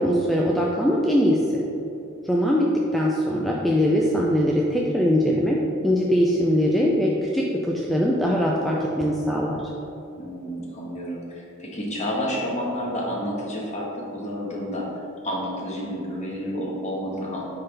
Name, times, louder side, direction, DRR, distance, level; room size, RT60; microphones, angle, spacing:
voice 1, 0.0-1.6 2.2-5.6 5.8-9.6, equal, ahead, -4 dB, 0.4 m, -21 dB
voice 2, 10.2-13.9 14.1-17.5, equal, 35° left, -4 dB, 1.3 m, -30 dB
9.7 x 3.9 x 3.3 m, 2.8 s
head